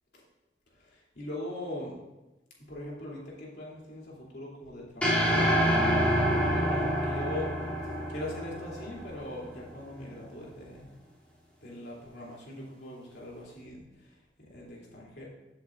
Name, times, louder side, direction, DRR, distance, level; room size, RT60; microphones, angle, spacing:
voice 1, 0.8-2.0 2.6-5.3 6.3-7.7 8.1-10.9 11.6-14.1 14.5-15.2, left 1 dB, 65° left, -5 dB, 3.3 m, -41 dB
sound 1, 5.0-9.4, equal, 10° left, 3.1 m, -27 dB
15.0 x 7.8 x 2.6 m, 1.0 s
head